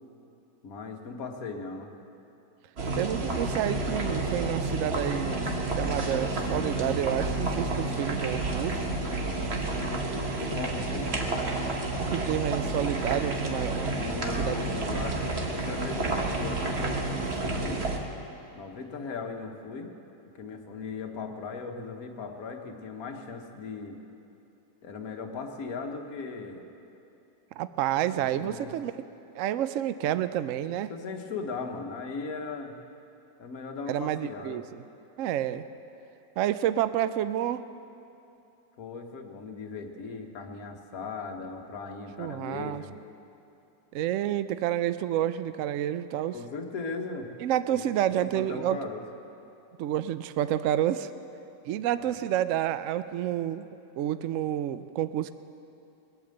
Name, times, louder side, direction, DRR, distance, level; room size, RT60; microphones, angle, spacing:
voice 1, 0.6-1.9 10.4-11.2 13.9-17.8 18.5-19.9 20.4-24.0 24.8-26.6 28.2-28.7 30.9-32.7 33.4-34.6 38.8-42.9 46.3-47.3 47.7-47.8 48.3-49.0, left 4 dB, 55° left, 3 dB, 1.6 m, -38 dB
sound 1, 2.8-18.0, right 2 dB, 40° right, 1.5 m, -30 dB
voice 2, 2.9-8.8 12.0-14.0 14.4-14.6 27.6-28.9 29.3-30.9 33.9-34.8 35.2-35.6 36.4-37.6 42.2-42.8 43.9-46.4 47.4-48.9 49.8-51.1 51.7-53.7 54.0-55.3, right 11 dB, 80° right, 13 dB, 0.7 m, -29 dB
21.0 x 8.7 x 7.8 m, 2.8 s
omnidirectional pair, 1.9 m